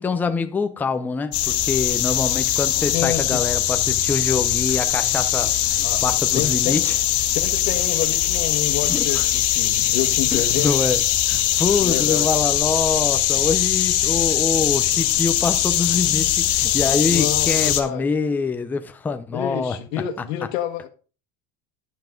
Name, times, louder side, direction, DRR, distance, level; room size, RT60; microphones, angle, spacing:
voice 1, 0.0-7.0 8.9-9.2 10.3-11.0 11.3-19.8, left 4 dB, 5° left, 0.4 m, -25 dB
sound 1, 1.3-17.8, left 12 dB, 45° left, 1.7 m, -21 dB
voice 2, 2.9-3.4 5.8-6.8 7.1-10.8 11.8-12.3 17.1-18.0 19.3-20.9, left 11 dB, 75° left, 1.4 m, -28 dB
11.0 x 5.8 x 5.0 m
cardioid pair, 170°, 32 cm